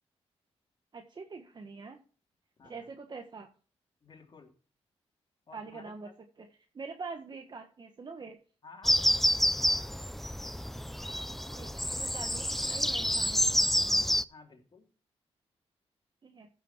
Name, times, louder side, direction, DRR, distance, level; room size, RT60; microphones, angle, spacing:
voice 1, 0.9-2.0 2.6-3.5 5.5-6.1 6.4-6.5 6.7-8.4 11.6-14.0 16.2-16.5, right 4 dB, 40° right, 4 dB, 1.3 m, -44 dB
voice 2, 2.6-2.9 4.0-4.5 5.5-6.1 8.2-8.3 8.6-9.8 14.1-14.8, left 4 dB, 45° left, 1 dB, 3.4 m, -54 dB
sound 1, 8.8-14.2, equal, ahead, 0.5 m, -28 dB
15.0 x 6.3 x 4.5 m, 0.41 s
cardioid pair, 85°, 11 cm